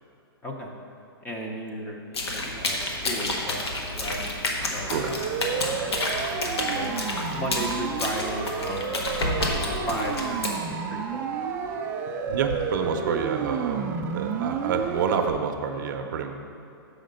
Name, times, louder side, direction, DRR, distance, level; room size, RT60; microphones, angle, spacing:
voice 1, 0.4-0.7 1.2-3.7 4.0-4.2 4.7-4.9 5.6-6.0 6.6-6.9 7.3-9.0 9.5-11.2, equal, 10° left, 0 dB, 0.7 m, -35 dB
sound 1, 2.1-10.5, left 2 dB, 85° left, 1.3 m, -30 dB
sound 2, 4.0-4.6 5.5-6.3 8.1-8.2 8.5-8.7 9.0-10.5 11.6-11.7 12.3-12.6, left 1 dB, 60° left, 1.0 m, -32 dB
voice 2, 4.8-5.4 12.3-16.3, right 6 dB, 50° right, 5 dB, 0.6 m, -28 dB
Siren, 4.9-15.3, right 6 dB, 15° right, 0.3 m, -31 dB
6.3 x 5.0 x 6.5 m, 2.7 s
hypercardioid pair, 155°, 13 cm